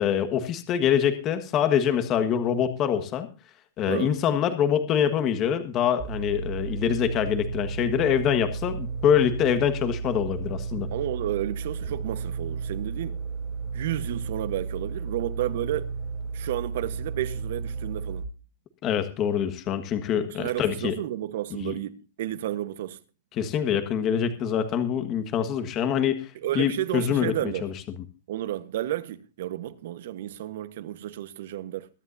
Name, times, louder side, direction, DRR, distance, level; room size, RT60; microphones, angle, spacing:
voice 1, 0.0-3.3 3.8-10.9 18.8-21.0 21.6-21.7 23.4-26.3 26.5-27.3 27.6-27.7, left 9 dB, 30° left, 1.5 m, -25 dB
sound 1, 6.0-18.3, right 5 dB, 25° right, 1.8 m, -33 dB
voice 2, 10.9-13.2 13.7-15.9 16.3-18.3 20.2-23.0 26.4-27.6 28.3-31.9, right 13 dB, 65° right, 1.2 m, -32 dB
22.5 x 10.5 x 2.7 m
supercardioid pair, 160°, 0 cm